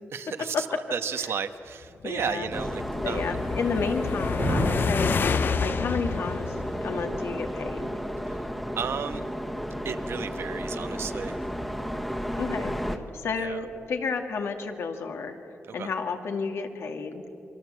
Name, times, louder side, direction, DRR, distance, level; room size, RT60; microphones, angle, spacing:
voice 1, 0.1-0.7 0.9-3.4 8.3-8.4 8.8-9.2 9.8-11.4 13.4-13.6 15.7-15.9, right 7 dB, 75° right, 9 dB, 1.2 m, -33 dB
voice 2, 2.0-2.5 3.0-8.0 12.4-15.4 15.7-17.2, left 5 dB, 80° left, 4 dB, 2.2 m, -32 dB
sound 1, 2.0-7.5, left 6 dB, 50° left, 0.6 m, -29 dB
sound 2, 2.5-13.0, equal, ahead, 1.4 m, -33 dB
sound 3, 4.4-6.3, right 4 dB, 35° right, 0.7 m, -33 dB
28.5 x 23.5 x 7.8 m, 2.8 s
wide cardioid pair, 150°, 4 cm